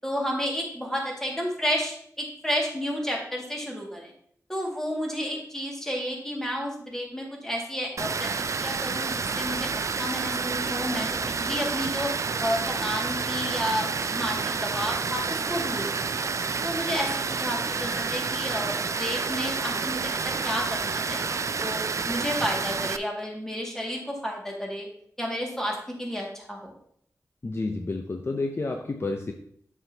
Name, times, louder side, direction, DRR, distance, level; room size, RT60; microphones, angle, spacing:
voice 1, 0.0-4.1 4.5-9.7 10.0-12.1 12.4-16.3 16.6-24.9 25.2-26.7, equal, 5° left, -1 dB, 2.0 m, -31 dB
Water, 8.0-23.0, right 5 dB, 55° right, 0.4 m, -29 dB
voice 2, 27.4-29.3, left 3 dB, 40° left, 4 dB, 0.6 m, -30 dB
7.6 x 6.2 x 2.8 m, 0.66 s
wide cardioid pair, 70°, 6 cm